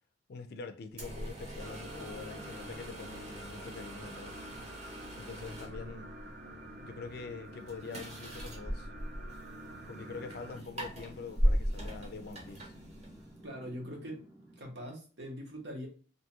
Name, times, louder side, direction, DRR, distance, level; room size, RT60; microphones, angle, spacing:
voice 1, 0.3-4.4 5.2-6.1 6.8-8.9 9.9-12.7, left 4 dB, 60° left, 0.4 m, -45 dB
sound 1, 0.9-13.5, equal, 40° right, 0.8 m, -38 dB
sound 2, 1.6-10.6, right 1 dB, 60° right, 0.5 m, -48 dB
sound 3, 9.7-14.7, right 1 dB, 10° right, 0.6 m, -54 dB
voice 2, 13.4-14.2 14.6-15.9, equal, 75° right, 0.9 m, -42 dB
2.7 x 2.2 x 2.8 m
head